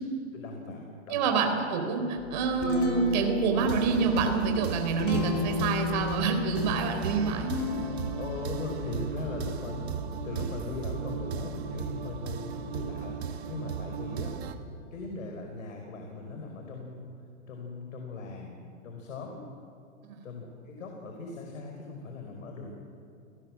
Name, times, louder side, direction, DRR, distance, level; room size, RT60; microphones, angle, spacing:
voice 1, 0.3-1.4 8.2-14.3 14.9-17.1 17.5-19.4 20.2-22.7, left 3 dB, 80° left, 2 dB, 5.1 m, -39 dB
voice 2, 1.1-7.5 20.1-20.2, right 5 dB, 35° right, 4 dB, 3.8 m, -27 dB
Guitar, 2.2-11.9, left 4 dB, 25° left, 2.9 m, -36 dB
sound 1, 3.6-14.5, right 7 dB, 55° right, 1.9 m, -36 dB
29.0 x 19.0 x 7.7 m, 2.7 s
hypercardioid pair, 175°, 39 cm